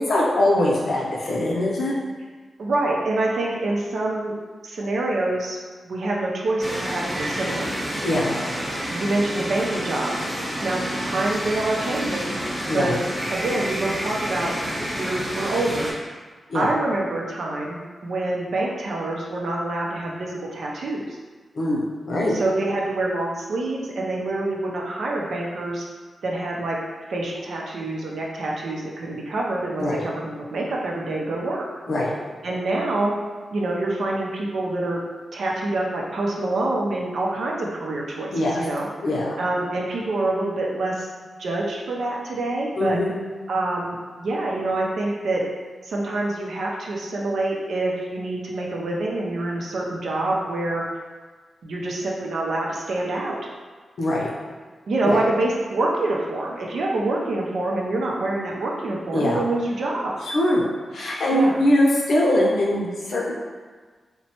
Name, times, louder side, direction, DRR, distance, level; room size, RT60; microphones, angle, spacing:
voice 1, 0.0-2.0 8.0-8.4 12.7-12.9 16.5-16.7 21.5-22.4 29.7-30.0 31.9-32.1 38.3-38.6 39.0-39.3 42.8-43.1 54.0-54.3 55.0-55.2 59.1-59.4 60.3-60.6 60.9-63.3, left 1 dB, 75° left, -4 dB, 0.6 m, -22 dB
voice 2, 2.6-4.4 4.6-5.6 5.8-7.7 8.9-10.1 10.6-12.3 12.7-13.0 13.3-14.6 15.0-15.9 16.5-21.2 22.3-25.9 26.2-26.8 27.1-31.6 32.4-33.1 33.5-35.0 35.3-38.9 39.4-41.1 41.4-43.0 43.5-45.5 45.8-50.8 51.6-53.4 54.9-60.1 61.3-61.6, right 2 dB, 75° right, -2 dB, 0.5 m, -26 dB
sound 1, 6.6-15.9, equal, 15° right, 0.8 m, -29 dB
3.0 x 2.1 x 2.8 m, 1.4 s
cardioid pair, 55°, 0 cm